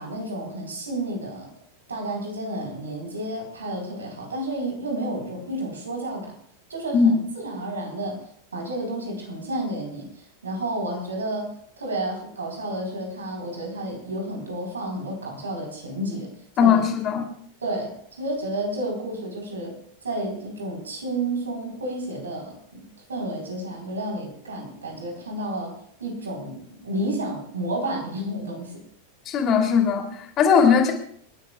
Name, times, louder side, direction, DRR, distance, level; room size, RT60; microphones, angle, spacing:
voice 1, 0.0-1.5 1.9-6.4 6.7-8.2 8.5-16.9 17.6-22.8 23.1-25.7 26.0-28.8, right 1 dB, 70° right, 1 dB, 3.9 m, -31 dB
voice 2, 16.6-17.3 29.3-30.9, left 6 dB, 30° left, 3 dB, 2.9 m, -19 dB
27.0 x 11.5 x 2.4 m, 0.64 s
figure-of-eight pair, 90°, 0 cm